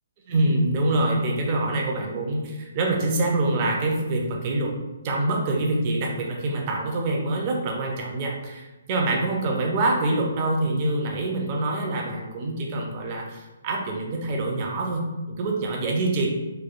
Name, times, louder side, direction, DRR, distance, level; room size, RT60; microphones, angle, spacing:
voice 1, 0.3-4.7 5.0-16.3, right 2 dB, 25° right, 0 dB, 0.4 m, -25 dB
3.0 x 2.0 x 2.5 m, 1.1 s
hypercardioid pair, 170°, 0 cm